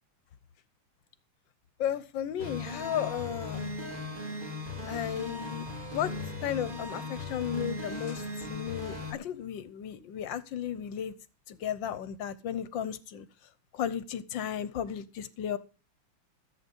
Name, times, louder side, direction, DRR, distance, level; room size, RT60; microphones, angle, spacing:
voice 1, 1.8-3.7 4.9-5.6 5.9-6.1 6.4-11.1 11.5-13.3 13.7-15.6, left 9 dB, 65° left, 15 dB, 1.5 m, -34 dB
sound 1, 2.4-9.1, left 2 dB, 25° right, 2.5 m, -38 dB
14.0 x 8.0 x 5.4 m, 0.33 s
omnidirectional pair, 2.4 m